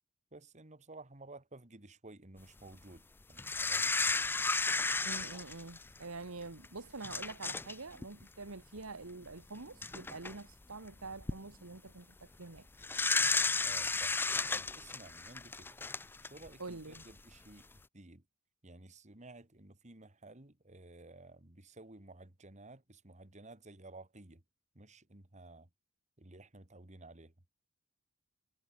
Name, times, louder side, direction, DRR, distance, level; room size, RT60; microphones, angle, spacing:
voice 1, 0.3-3.9 13.6-14.2 14.5-15.9 16.2-17.7 17.9-18.2 18.6-24.4 24.7-25.7 26.2-27.3, right 2 dB, 35° right, 2.2 m, -54 dB
sound 1, 3.4-6.0 6.6-6.7 7.0-7.8 8.0-8.2 9.3-9.4 9.8-10.3 11.0-11.4 12.8-16.5 16.9-17.0, left 4 dB, 10° left, 0.3 m, -33 dB
voice 2, 5.0-12.7 16.6-17.0, right 3 dB, 80° right, 1.6 m, -46 dB
head